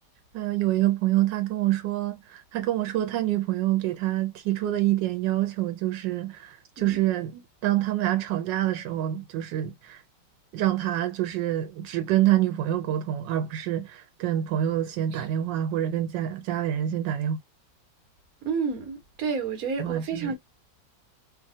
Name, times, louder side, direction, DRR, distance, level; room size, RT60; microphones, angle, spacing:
voice 1, 0.3-10.0 10.5-17.4 19.8-20.3, right 13 dB, 90° right, 1.3 m, -26 dB
voice 2, 18.4-20.3, right 5 dB, 60° right, 1.3 m, -30 dB
3.2 x 2.3 x 2.6 m
omnidirectional pair, 1.9 m